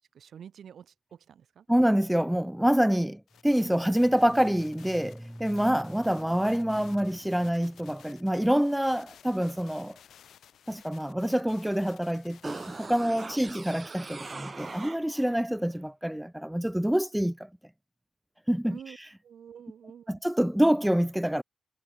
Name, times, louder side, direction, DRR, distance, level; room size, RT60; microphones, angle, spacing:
voice 1, 0.0-1.7 13.4-13.5 18.7-19.0 19.2-20.2, right 8 dB, 70° right, 1.7 m, -48 dB
voice 2, 1.7-10.0 10.7-17.5 18.5-18.8 20.1-21.4, equal, 5° right, 0.4 m, -26 dB
sound 1, 3.3-14.9, left 9 dB, 75° left, 1.3 m, -56 dB
sound 2, 12.4-15.4 15.8-15.9, right 4 dB, 35° right, 2.4 m, -41 dB
cardioid pair, 60°, 0 cm